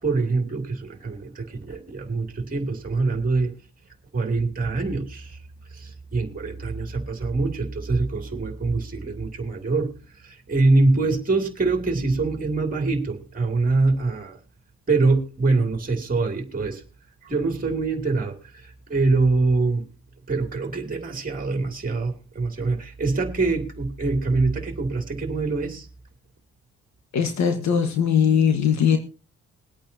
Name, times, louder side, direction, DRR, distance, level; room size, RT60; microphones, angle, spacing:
voice 1, 0.0-3.5 4.1-5.4 5.7-9.9 10.2-14.4 14.9-16.8 17.2-19.8 20.3-25.9, right 3 dB, 30° right, 5 dB, 2.9 m, -24 dB
voice 2, 27.1-29.0, left 7 dB, 65° left, 6 dB, 1.6 m, -20 dB
22.0 x 8.8 x 2.9 m, 0.34 s
cardioid pair, 90°, 30 cm